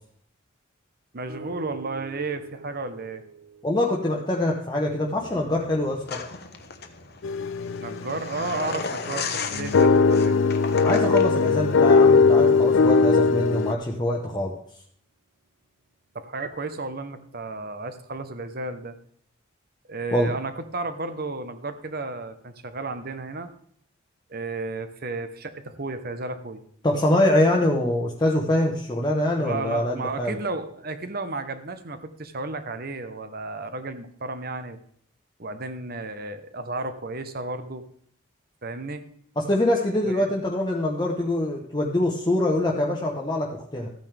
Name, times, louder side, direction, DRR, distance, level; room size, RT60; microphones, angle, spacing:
voice 1, 1.1-3.2 7.8-10.3 16.1-18.9 19.9-23.5 24.3-26.6 29.4-34.8 35.4-37.8 38.6-39.0 40.0-40.2, right 3 dB, 50° right, 9 dB, 1.1 m, -33 dB
sound 1, 1.3-4.6 5.0-8.8 9.4-13.6 14.3-14.4, right 4 dB, 80° right, 2.9 m, -48 dB
voice 2, 3.6-6.2 10.8-14.5 20.1-20.3 26.8-30.4 39.4-43.9, left 1 dB, 20° left, -1 dB, 1.1 m, -24 dB
sound 2, 6.1-11.6, left 5 dB, 50° left, 1.1 m, -35 dB
sound 3, 7.2-13.7, left 4 dB, 70° left, 0.5 m, -20 dB
14.5 x 9.2 x 3.5 m, 0.63 s
head